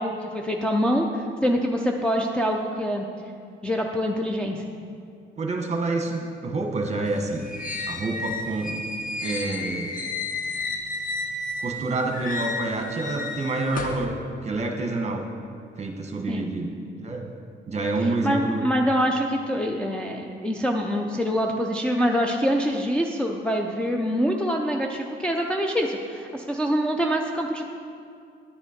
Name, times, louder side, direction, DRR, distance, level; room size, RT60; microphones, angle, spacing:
voice 1, 0.0-3.1 3.6-4.6 16.3-16.5 18.0-27.7, equal, 5° left, 0 dB, 0.5 m, -25 dB
voice 2, 5.4-7.5 7.9-8.8 9.2-9.9 11.6-14.1 14.4-15.2 15.8-16.7 17.0-17.3 17.7-18.7, right 2 dB, 35° right, 3 dB, 1.1 m, -27 dB
sound 1, 7.1-11.8 12.1-14.1, left 2 dB, 45° left, 0.8 m, -32 dB
10.0 x 6.1 x 4.3 m, 2.3 s
cardioid pair, 90°, 20 cm